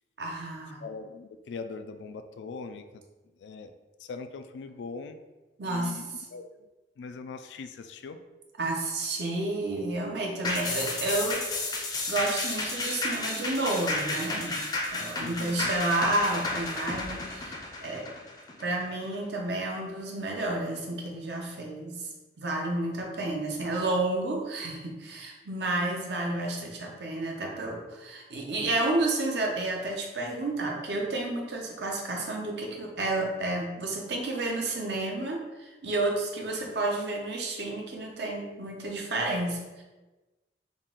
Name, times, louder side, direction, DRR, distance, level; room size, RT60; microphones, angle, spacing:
voice 1, 0.2-0.8 5.6-6.0 8.6-11.4 11.7-14.6 14.9-18.1 18.6-22.1 22.4-39.8, right 2 dB, 75° right, 0 dB, 0.7 m, -31 dB
voice 2, 0.8-3.0 3.4-3.7 4.0-5.2 5.7-6.5 7.0-8.2 15.2-15.7, left 4 dB, 85° left, 9 dB, 0.3 m, -41 dB
sound 1, 10.4-19.2 19.6-19.7, left 2 dB, 25° left, 0.5 m, -32 dB
3.9 x 2.4 x 3.6 m, 1.1 s
head